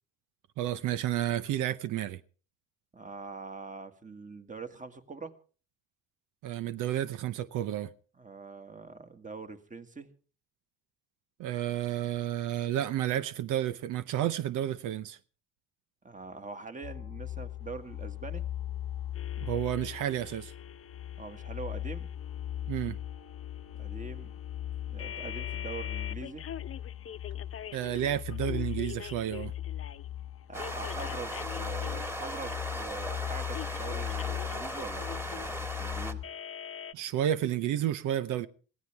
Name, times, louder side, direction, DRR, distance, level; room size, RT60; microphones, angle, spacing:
voice 1, 0.6-2.2 6.4-7.9 11.4-15.2 19.4-20.5 22.7-23.0 27.7-29.5 36.9-38.5, right 11 dB, 85° right, 0.8 m, -31 dB
voice 2, 2.9-5.4 8.2-10.1 16.0-18.4 21.2-22.1 23.7-24.4 24.9-26.5 30.5-36.2, right 4 dB, 25° right, 1.9 m, -43 dB
sound 1, 16.8-36.2, left 12 dB, 75° left, 1.1 m, -39 dB
sound 2, 19.1-30.1 30.6-32.9 33.5-36.9, left 9 dB, 45° left, 0.9 m, -45 dB
sound 3, 30.5-36.1, equal, 10° right, 1.9 m, -38 dB
23.0 x 16.5 x 3.4 m
cardioid pair, 90°, 30 cm